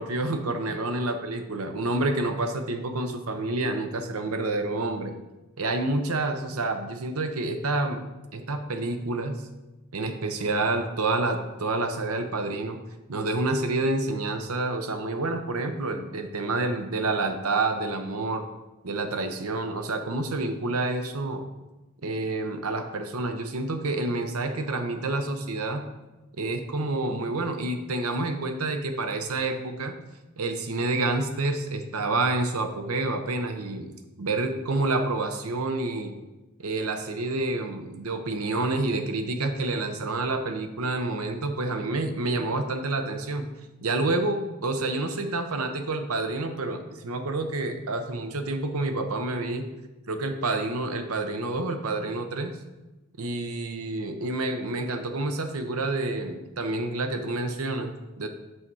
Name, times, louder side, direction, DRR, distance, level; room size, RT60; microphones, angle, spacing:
voice 1, 0.0-5.1 5.6-8.1 8.3-9.4 9.9-12.8 13.1-18.4 18.8-21.4 22.0-25.9 26.4-29.9 30.4-33.9 34.2-36.1 36.6-43.5 43.8-49.7 50.1-52.5 53.2-58.3, right 2 dB, 75° right, 7 dB, 0.8 m, -28 dB
6.3 x 5.9 x 4.7 m, 1.1 s
head